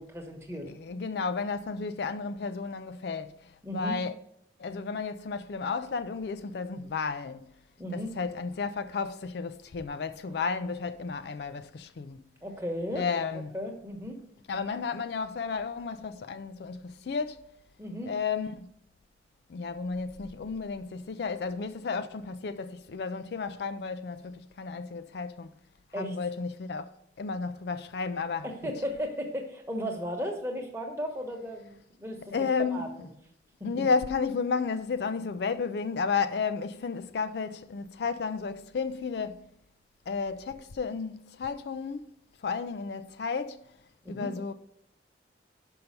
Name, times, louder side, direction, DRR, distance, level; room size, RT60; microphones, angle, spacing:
voice 1, 0.0-0.7 3.6-4.0 7.8-8.1 12.4-13.1 13.3-14.2 17.8-18.1 25.9-26.1 28.4-32.9 44.0-44.5, equal, 15° right, 1.1 m, -35 dB
voice 2, 0.7-4.1 4.6-7.5 7.9-12.2 12.9-13.6 14.5-17.5 18.1-18.7 19.5-25.5 26.0-26.9 27.2-28.5 32.3-32.9 33.6-39.4 40.1-42.1 42.4-43.6 44.1-44.5, left 5 dB, 60° left, 0.4 m, -32 dB
5.7 x 5.4 x 6.6 m
head